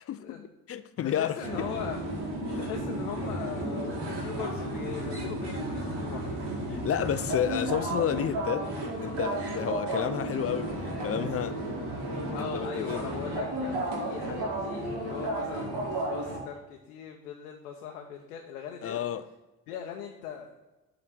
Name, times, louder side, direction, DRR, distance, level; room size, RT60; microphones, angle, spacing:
voice 1, 0.0-1.7 2.5-2.6 6.7-8.7 9.0-11.6 12.4-13.1 18.8-19.3, left 10 dB, 35° left, 0.4 m, -31 dB
voice 2, 1.0-2.1 2.6-6.4 12.3-19.0 19.7-20.5, left 8 dB, 85° left, 0.7 m, -40 dB
sound 1, 1.4-16.4, right 1 dB, 65° right, 2.1 m, -33 dB
7.5 x 3.9 x 5.6 m
hypercardioid pair, 50°, 44 cm